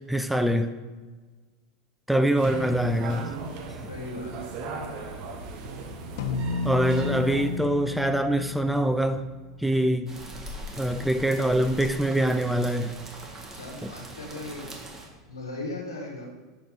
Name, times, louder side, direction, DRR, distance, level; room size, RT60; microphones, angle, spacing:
voice 1, 0.1-0.7 2.1-3.3 6.6-9.2 9.6-10.1 10.8-13.0 13.8-13.9, right 1 dB, ahead, 8 dB, 0.4 m, -24 dB
sound 1, 2.4-7.6, right 3 dB, 50° right, 1.0 m, -38 dB
voice 2, 3.9-4.5 7.0-7.2 13.5-14.7 15.3-16.3, left 2 dB, 80° left, 1 dB, 1.5 m, -38 dB
sound 2, 6.2-10.8, left 4 dB, 60° left, 0.5 m, -33 dB
sound 3, 10.1-15.1, right 1 dB, 20° right, 1.5 m, -41 dB
5.8 x 5.3 x 5.3 m, 1.3 s
figure-of-eight pair, 85°, 2 cm